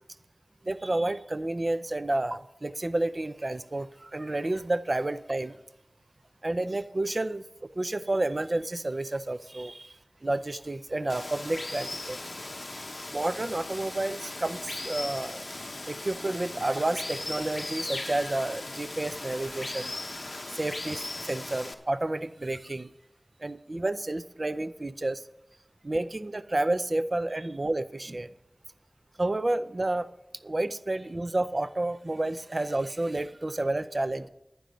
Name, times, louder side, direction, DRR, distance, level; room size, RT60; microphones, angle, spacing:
voice 1, 0.6-5.6 6.4-12.2 13.1-15.5 15.9-19.9 20.5-22.9 23.4-25.2 25.8-28.3 29.2-30.1 30.4-34.3, right 2 dB, 45° right, 13 dB, 0.5 m, -30 dB
Water, 11.1-21.7, left 2 dB, 50° left, 0.9 m, -38 dB
11.5 x 9.5 x 5.2 m, 0.86 s
wide cardioid pair, 50°, 0 cm